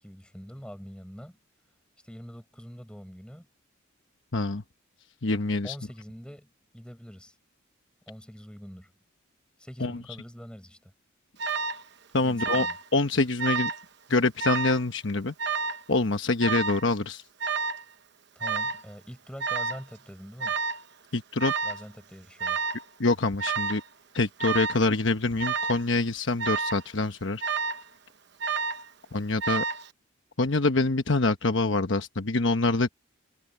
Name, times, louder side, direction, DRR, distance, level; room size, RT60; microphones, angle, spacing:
voice 1, 0.0-1.4 2.0-3.5 5.6-7.3 8.1-8.9 9.6-10.9 12.2-12.8 18.3-20.6 21.6-22.6, equal, 5° left, 7.9 m, -44 dB
voice 2, 4.3-4.6 5.2-5.7 9.8-10.0 12.1-12.7 12.9-13.7 14.1-15.3 15.9-17.2 21.1-21.5 23.0-23.8 24.1-27.4 29.1-29.6 30.4-32.9, left 3 dB, 60° left, 1.1 m, -25 dB
Alarm, 11.4-11.8 12.4-12.9 13.1-13.8 14.4-14.8 15.4-15.8 16.4-16.8 17.4-17.8 18.4-18.8 19.4-19.8 20.4-20.8 21.4-21.8 22.4-22.9 23.4-23.8 24.4-24.8 25.4-25.8 26.4-26.8 27.4-27.9 28.4-28.9 29.4-29.9, right 5 dB, 55° right, 1.0 m, -30 dB
head